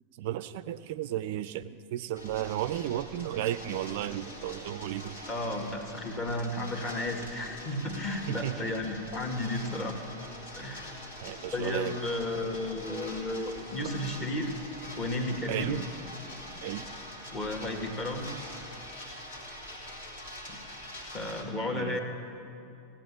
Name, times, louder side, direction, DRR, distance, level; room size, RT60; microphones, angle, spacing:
voice 1, 0.2-5.2 8.3-8.7 11.2-12.0 15.5-15.8 16.6-16.9 21.7-22.0, right 13 dB, 50° right, 14 dB, 0.3 m, -34 dB
sound 1, 2.1-21.4, left 1 dB, 65° left, 2.5 m, -44 dB
voice 2, 5.3-10.0 10.6-10.9 11.5-14.5 15.0-15.8 17.3-18.3 20.5-20.6 21.1-22.0, left 1 dB, 30° left, 4 dB, 1.7 m, -33 dB
17.0 x 8.7 x 7.5 m, 2.7 s
figure-of-eight pair, 90°, 0 cm